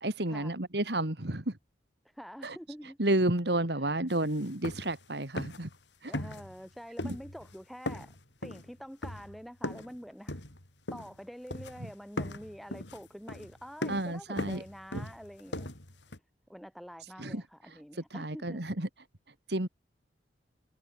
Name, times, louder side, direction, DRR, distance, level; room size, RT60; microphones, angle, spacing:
voice 1, 0.0-1.6 2.4-2.6 3.0-5.7 6.0-6.1 7.0-7.2 13.9-14.6 15.0-15.1 17.2-17.4 18.1-18.9 19.5-19.7, right 1 dB, 65° right, 2.6 m, -31 dB
voice 2, 2.0-3.0 3.8-4.0 6.1-8.1 8.4-10.4 10.9-15.7 16.5-18.6, equal, ahead, 7.2 m, -46 dB
sound 1, 4.1-4.2 4.5-5.0 5.3-5.8 6.1-6.7 7.0-7.5 7.9-10.0 10.3-11.2 11.5-11.9 12.2-16.2, left 1 dB, 80° left, 4.5 m, -39 dB
head